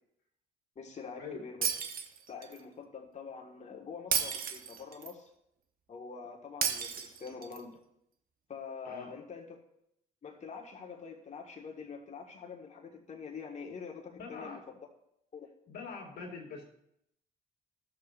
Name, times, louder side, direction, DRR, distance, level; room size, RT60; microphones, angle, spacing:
voice 1, 0.7-1.8 2.3-5.3 5.9-7.8 8.5-9.6 10.2-14.6 15.3-15.5, left 5 dB, 40° left, 1 dB, 1.5 m, -45 dB
Shatter, 1.6-2.6 4.1-5.1 6.6-7.6, right 7 dB, 55° right, 0.9 m, -33 dB
voice 2, 14.1-14.6 15.7-16.7, left 4 dB, 65° left, 0 dB, 2.1 m, -43 dB
14.5 x 6.7 x 2.5 m, 0.77 s
hypercardioid pair, 55°, 18 cm